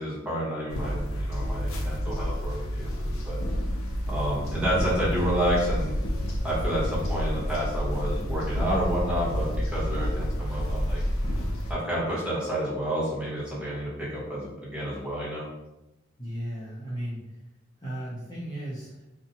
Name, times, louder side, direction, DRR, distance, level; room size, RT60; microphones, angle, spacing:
voice 1, 0.0-3.4 4.1-5.9 6.4-11.0 11.7-15.5, right 1 dB, 5° right, -8 dB, 0.9 m, -30 dB
sound 1, 0.7-11.7, equal, 80° left, 0.5 m, -29 dB
voice 2, 16.2-17.4 17.8-19.1, right 1 dB, 20° left, -9 dB, 0.5 m, -35 dB
2.6 x 2.1 x 2.7 m, 0.94 s
head